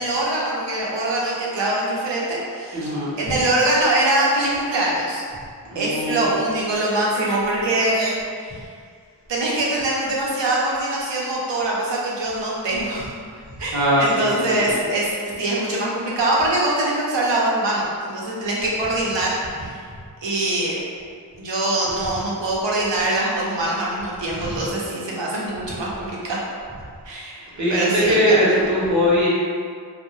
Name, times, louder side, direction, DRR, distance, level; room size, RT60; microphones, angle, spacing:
voice 1, 0.0-2.9 3.2-5.2 5.7-8.7 9.3-13.1 13.6-19.8 20.2-20.8 21.4-26.4 27.1-28.6, right 1 dB, 90° right, -5 dB, 0.6 m, -23 dB
voice 2, 2.7-3.2 5.7-6.3 13.7-14.7 24.3-24.6 27.6-29.3, equal, 45° right, -7 dB, 0.7 m, -20 dB
2.2 x 2.1 x 2.9 m, 2.1 s
wide cardioid pair, 45°, 42 cm